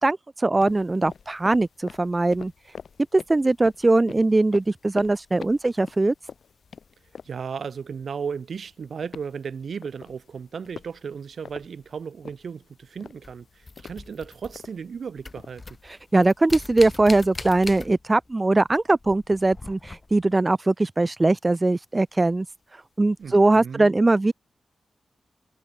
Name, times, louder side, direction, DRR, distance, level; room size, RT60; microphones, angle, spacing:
voice 1, 0.0-2.5 3.1-6.1 15.9-22.5 22.7-24.3, right 2 dB, 30° right, 0.3 m, -21 dB
sound 1, 0.6-17.7, left 6 dB, 75° left, 2.6 m, -46 dB
voice 2, 7.2-15.6 23.2-23.9, right 6 dB, 75° right, 1.7 m, -35 dB
sound 2, 13.2-14.9 15.2-18.3 18.6-20.4 22.3-22.4 23.2-23.4, left 3 dB, 40° left, 3.3 m, -40 dB
cardioid pair, 45°, 0 cm